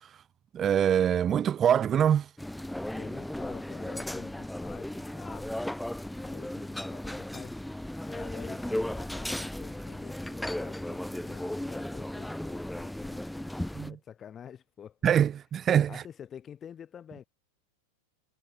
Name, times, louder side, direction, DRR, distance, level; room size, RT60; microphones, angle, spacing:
voice 1, 0.5-2.3 13.8-13.9 15.0-16.0, right 9 dB, 25° right, 0.5 m, -24 dB
sound 1, 2.4-13.9, left 1 dB, 5° left, 1.9 m, -36 dB
voice 2, 2.9-5.6 6.2-13.5 13.9-15.0 15.9-17.3, left 8 dB, 25° left, 6.6 m, -48 dB
figure-of-eight pair, 90°, 0 cm